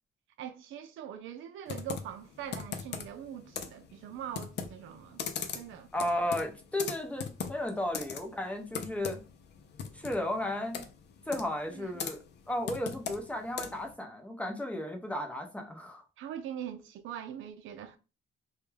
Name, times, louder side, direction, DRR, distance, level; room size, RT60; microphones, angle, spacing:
voice 1, 0.4-5.2 5.5-5.9 11.7-12.0 16.2-18.0, right 9 dB, 80° right, 0.5 m, -42 dB
Computer keyboard, 1.7-13.9, left 7 dB, 60° left, 0.4 m, -41 dB
voice 2, 5.9-9.2 9.9-10.8 11.3-16.0, left 1 dB, 5° left, 0.7 m, -34 dB
2.3 x 2.1 x 3.2 m
cardioid pair, 90°, 20 cm